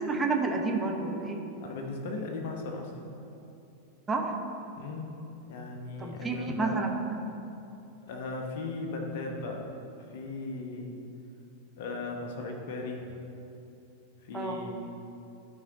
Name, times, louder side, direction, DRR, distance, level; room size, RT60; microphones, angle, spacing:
voice 1, 0.0-1.4 4.1-4.3 6.0-6.9 14.3-14.6, right 3 dB, 15° right, 2 dB, 0.9 m, -30 dB
voice 2, 1.6-2.9 4.8-5.1 5.5-6.8 8.1-9.6 10.1-11.0 11.8-13.1 14.2-14.7, left 3 dB, 50° left, 2 dB, 1.1 m, -37 dB
12.0 x 4.8 x 3.8 m, 2.8 s
figure-of-eight pair, 90°, 0 cm